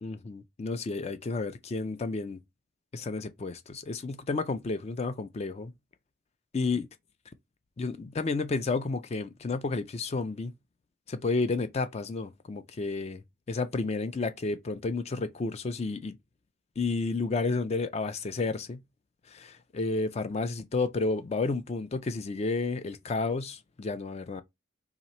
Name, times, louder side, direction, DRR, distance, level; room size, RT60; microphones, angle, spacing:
voice 1, 0.0-2.4 2.9-5.7 6.5-6.9 7.8-10.5 11.1-13.2 13.5-16.2 16.8-18.8 19.3-24.4, left 3 dB, 30° left, 0.3 m, -31 dB
3.2 x 2.9 x 4.2 m
head